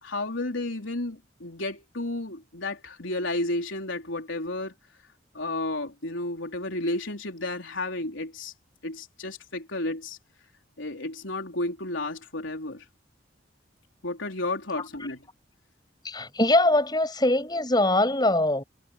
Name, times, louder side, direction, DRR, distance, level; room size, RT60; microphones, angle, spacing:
voice 1, 0.0-4.7 5.3-8.5 8.8-10.2 10.8-12.8 14.0-15.2, left 2 dB, 85° left, 3.9 m, -32 dB
voice 2, 16.0-18.6, left 1 dB, 20° left, 6.9 m, -22 dB
head